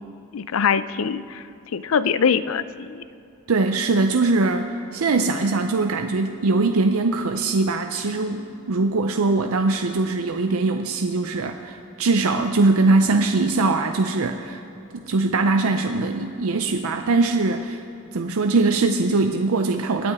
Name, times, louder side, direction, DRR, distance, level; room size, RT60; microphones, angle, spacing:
voice 1, 0.3-1.4 1.7-3.0, left 6 dB, 70° left, 15 dB, 0.5 m, -23 dB
voice 2, 3.5-14.6 14.9-17.8 18.1-20.1, right 3 dB, 85° right, 5 dB, 0.6 m, -21 dB
26.0 x 9.8 x 3.6 m, 2.8 s
head